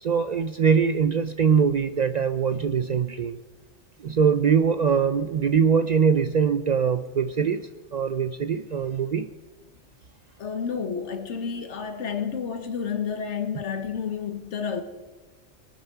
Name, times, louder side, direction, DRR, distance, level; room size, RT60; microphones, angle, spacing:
voice 1, 0.0-3.4 4.0-7.6 7.9-9.3, right 6 dB, 60° right, 0.4 m, -22 dB
voice 2, 10.4-14.8, left 6 dB, 85° left, 1.4 m, -30 dB
21.5 x 9.4 x 4.5 m
omnidirectional pair, 1.2 m